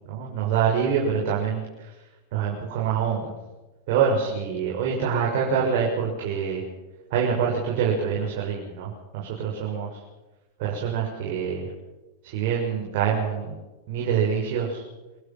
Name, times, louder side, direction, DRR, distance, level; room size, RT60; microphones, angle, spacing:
voice 1, 0.1-1.9 2.3-3.3 3.9-6.6 7.1-10.0 10.6-11.7 12.2-13.6 13.9-14.8, right 7 dB, 60° right, -2 dB, 6.4 m, -25 dB
27.0 x 16.0 x 6.1 m, 1.1 s
hypercardioid pair, 110°, 0 cm